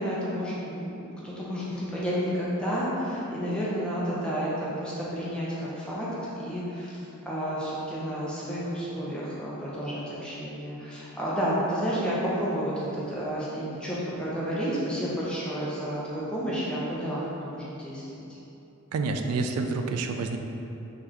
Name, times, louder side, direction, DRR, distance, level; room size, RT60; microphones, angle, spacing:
voice 1, 0.0-6.1 6.4-18.0, equal, 5° left, -8 dB, 0.6 m, -31 dB
voice 2, 18.9-20.4, right 3 dB, 80° right, 5 dB, 0.3 m, -28 dB
3.9 x 3.2 x 2.9 m, 2.9 s
head